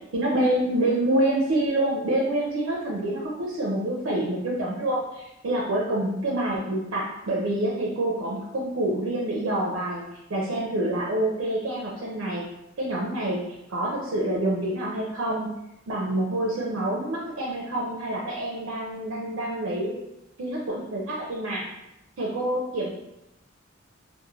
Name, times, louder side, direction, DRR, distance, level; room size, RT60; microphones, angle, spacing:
voice 1, 0.1-10.0 10.3-12.4 12.8-13.4 13.7-15.5 15.9-19.9 20.4-21.7 22.2-22.9, right 1 dB, 80° right, -3 dB, 0.5 m, -27 dB
3.1 x 2.1 x 2.3 m, 0.88 s
head